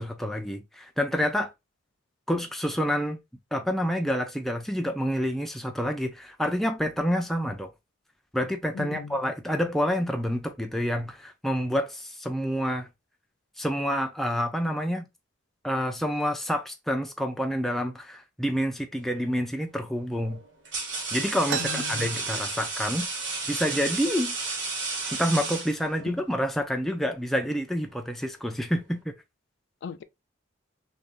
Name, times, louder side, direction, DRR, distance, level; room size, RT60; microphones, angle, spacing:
voice 1, 0.0-1.5 2.3-3.2 3.5-7.7 8.3-12.9 13.6-15.1 15.6-20.4 21.1-23.1 23.5-24.3 25.1-29.1, equal, ahead, 0.4 m, -28 dB
voice 2, 8.7-9.2 21.6-22.1 26.1-26.2 29.8-30.0, left 6 dB, 65° left, 0.4 m, -37 dB
sound 1, 19.1-19.4 20.2-26.2, right 3 dB, 65° right, 1.3 m, -32 dB
sound 2, 21.5-23.1 23.4-23.5 23.8-24.4 25.0-25.2 25.9-26.0 26.5-27.0, right 8 dB, 90° right, 0.4 m, -36 dB
2.9 x 2.7 x 3.5 m
head